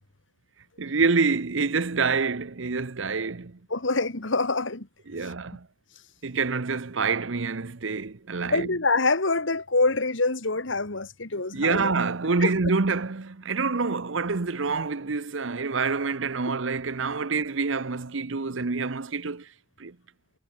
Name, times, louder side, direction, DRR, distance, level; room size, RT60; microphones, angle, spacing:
voice 1, 0.8-3.6 5.1-5.7 6.2-8.7 11.5-19.5 19.8-20.0, right 4 dB, 75° right, 0.9 m, -27 dB
voice 2, 3.7-4.9 5.2-5.3 8.4-11.9 12.4-12.5, left 3 dB, 75° left, 2.2 m, -25 dB
head